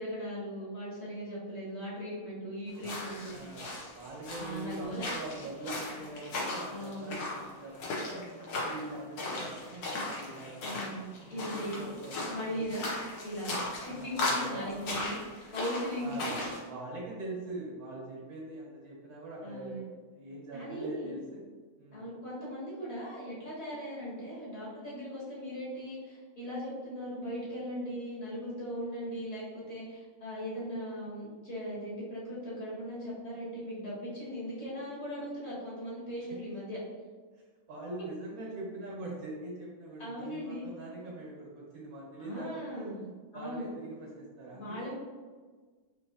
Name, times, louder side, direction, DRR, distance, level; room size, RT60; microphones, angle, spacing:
voice 1, 0.0-3.4 4.4-5.0 6.7-7.1 10.6-11.0 11.3-11.8 12.3-12.9 13.2-15.1 15.5-16.3 19.4-19.8 20.5-21.1 21.9-36.8 40.0-40.7 42.2-43.1 43.3-43.7 44.5-44.9, equal, 45° left, -8 dB, 1.6 m, -39 dB
sound 1, 2.7-16.6, left 2 dB, 85° left, 1.4 m, -37 dB
voice 2, 3.3-8.2 8.6-10.8 11.2-12.7 13.8-14.7 16.0-16.4 16.7-21.4 21.8-22.1 37.7-42.9 43.3-44.9, right 2 dB, 70° right, -4 dB, 1.6 m, -43 dB
4.1 x 2.8 x 2.8 m, 1.4 s
omnidirectional pair, 1.6 m